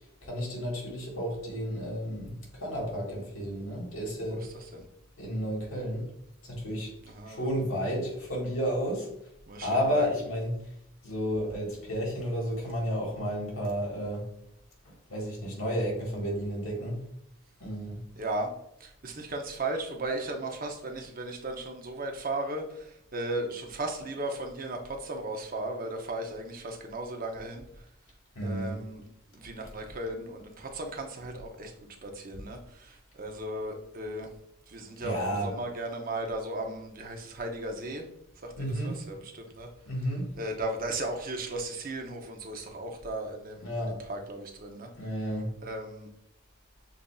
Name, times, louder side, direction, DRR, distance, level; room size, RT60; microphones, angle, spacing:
voice 1, 0.2-4.4 5.2-6.1 6.4-6.9 7.3-9.1 9.6-10.5 11.0-14.3 14.8-17.0 17.6-18.0 28.3-28.8 35.0-35.5 38.6-39.0 39.8-40.3 43.6-44.0 44.9-45.5, equal, 80° left, 1.6 m, -32 dB
voice 2, 4.3-4.9 7.0-7.5 9.5-10.1 18.2-18.5 18.8-27.6 28.4-29.0 29.3-31.7 32.0-34.3 34.7-38.1 38.4-39.7 40.4-44.9 45.6-46.1, right 2 dB, 40° right, 0.7 m, -36 dB
7.1 x 2.6 x 2.3 m
head